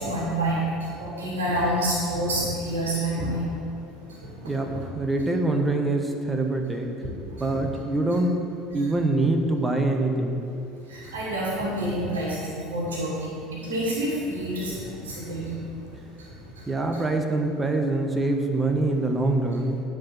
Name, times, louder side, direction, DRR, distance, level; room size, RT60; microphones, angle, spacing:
voice 1, 0.0-3.7 4.1-4.5 5.2-5.3 7.3-7.6 10.9-15.5 16.2-16.6 16.9-17.0, right 1 dB, 85° right, -7 dB, 2.5 m, -28 dB
voice 2, 4.5-6.9 7.4-8.4 8.7-10.5 16.7-19.8, right 2 dB, 20° right, 3 dB, 1.2 m, -24 dB
10.0 x 4.9 x 7.6 m, 2.6 s
hypercardioid pair, 70°, 0 cm